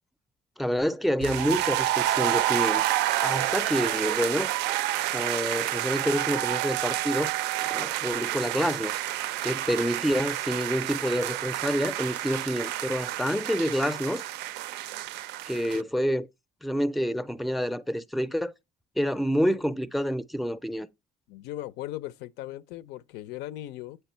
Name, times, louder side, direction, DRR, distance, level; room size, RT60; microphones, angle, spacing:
voice 1, 0.6-2.8 3.2-4.5 5.1-7.3 7.6-9.0 9.4-14.2 15.5-16.2 16.6-18.5 19.0-20.9, equal, ahead, 0.4 m, -28 dB
sound 1, 1.2-15.8, right 14 dB, 85° right, 0.4 m, -29 dB
voice 2, 21.3-24.0, left 14 dB, 90° left, 0.5 m, -38 dB
8.1 x 3.3 x 4.3 m
cardioid pair, 110°, 17 cm